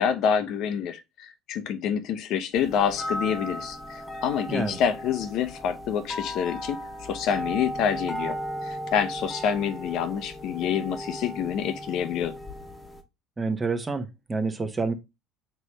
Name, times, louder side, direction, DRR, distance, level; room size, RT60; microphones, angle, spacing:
voice 1, 0.0-8.4 8.6-12.3, left 8 dB, 60° left, 0.6 m, -27 dB
sound 1, 2.5-13.0, equal, 10° left, 1.0 m, -36 dB
voice 2, 4.5-4.8 13.4-14.9, right 4 dB, 20° right, 0.8 m, -28 dB
4.4 x 3.1 x 3.0 m
hypercardioid pair, 75°, 0 cm